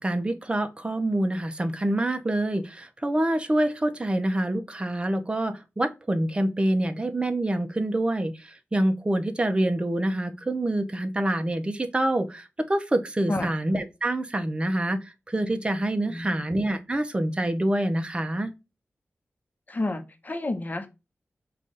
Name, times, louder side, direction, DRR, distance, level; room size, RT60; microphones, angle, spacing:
voice 1, 0.0-8.3 8.7-15.0 15.3-18.5, right 1 dB, 25° right, 0.7 m, -26 dB
voice 2, 16.0-16.5 19.7-20.9, left 2 dB, 40° left, 0.9 m, -30 dB
5.2 x 2.5 x 3.9 m
cardioid pair, 50°, 4 cm